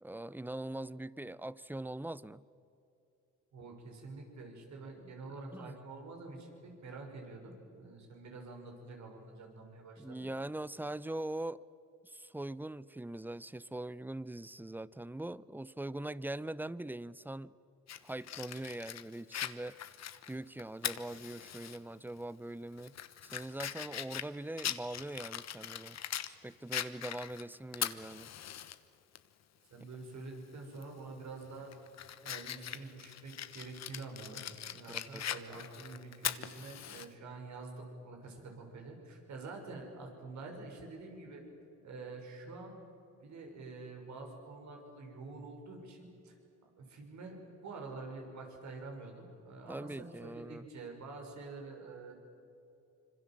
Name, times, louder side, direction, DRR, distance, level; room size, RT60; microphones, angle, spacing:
voice 1, 0.0-2.4 5.5-5.8 10.0-11.6 12.0-17.5 18.0-19.8 20.3-22.9 23.3-26.0 26.3-28.3 34.9-35.2 49.7-50.7, right 1 dB, 5° right, 19 dB, 0.6 m, -42 dB
voice 2, 3.5-10.3 29.7-31.7 32.2-41.4 41.8-42.8 43.2-46.3 46.8-52.1, right 3 dB, 65° right, 2 dB, 6.2 m, -47 dB
Fire, 17.9-21.8 22.2-22.3 22.8-26.3 26.7-28.7 29.1-29.2 30.7-31.0 31.5-37.1, left 10 dB, 60° left, 1.2 m, -41 dB
26.0 x 25.5 x 7.6 m, 2.7 s
cardioid pair, 90°, 30 cm